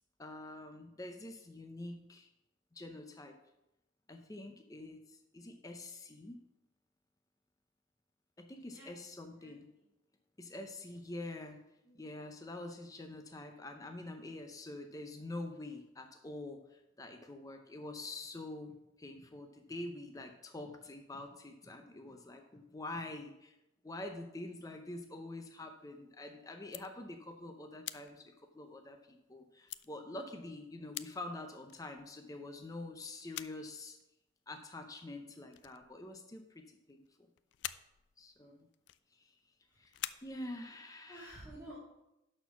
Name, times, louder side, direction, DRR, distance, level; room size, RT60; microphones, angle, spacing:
voice 1, 0.2-2.3 2.7-3.3 4.1-6.4 8.4-9.6 10.4-11.6 11.9-23.5 23.8-34.0 34.5-37.0 38.2-38.7 39.2-39.3 39.8-39.9 40.2-41.3 41.7-41.8, left 2 dB, 20° left, 5 dB, 0.6 m, -46 dB
voice 2, 8.6-9.1 9.4-9.9 11.8-12.2 38.4-38.6 39.7-40.3 41.1-41.8, right 1 dB, 10° right, -8 dB, 2.2 m, -55 dB
sound 1, 25.3-26.1 26.5-27.4 27.8-29.3 29.7-29.9 30.5-30.6 30.9-31.2 31.7-32.4 33.0-33.7 33.9-34.4 35.0-35.2 35.5-36.6 36.9-37.1 37.4-39.5 39.8-40.9, left 14 dB, 60° left, 0.4 m, -47 dB
12.0 x 4.5 x 5.8 m, 0.89 s
head